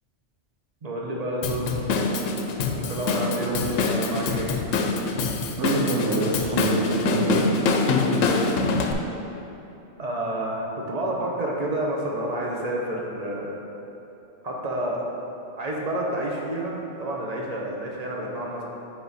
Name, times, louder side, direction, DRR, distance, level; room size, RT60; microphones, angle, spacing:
voice 1, 0.8-1.9 2.7-4.5 8.0-8.8 10.0-13.5 14.4-15.0 15.6-18.6, right 1 dB, 35° right, -2 dB, 0.9 m, -29 dB
Drum kit / Drum, 1.4-8.9, left 3 dB, 85° left, 1.0 m, -25 dB
voice 2, 3.4-3.8 5.6-7.4, right 3 dB, 70° right, -6 dB, 1.1 m, -26 dB
9.3 x 3.8 x 4.1 m, 2.9 s
omnidirectional pair, 1.3 m